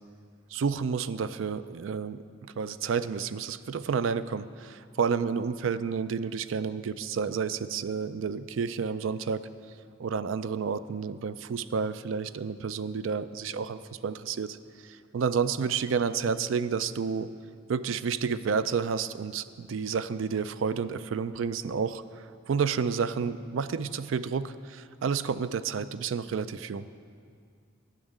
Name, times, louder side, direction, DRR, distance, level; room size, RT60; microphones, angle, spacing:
voice 1, 0.5-9.4 10.0-17.3 17.7-26.9, right 6 dB, 80° right, 14 dB, 0.4 m, -30 dB
10.5 x 6.4 x 8.9 m, 2.2 s
head